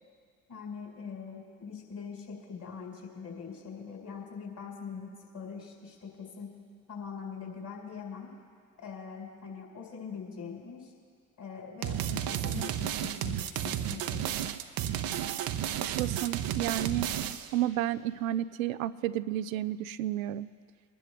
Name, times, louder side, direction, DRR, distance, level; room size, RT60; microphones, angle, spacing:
voice 1, 0.5-6.5 6.9-8.3 8.8-10.9 11.4-14.5, left 6 dB, 50° left, -1 dB, 4.7 m, -43 dB
sound 1, 11.8-17.6, right 10 dB, 60° right, 0.8 m, -32 dB
voice 2, 16.0-17.1 17.5-20.5, right 13 dB, 80° right, 14 dB, 0.5 m, -31 dB
24.5 x 11.0 x 3.4 m, 2.1 s
hypercardioid pair, 45°, 40 cm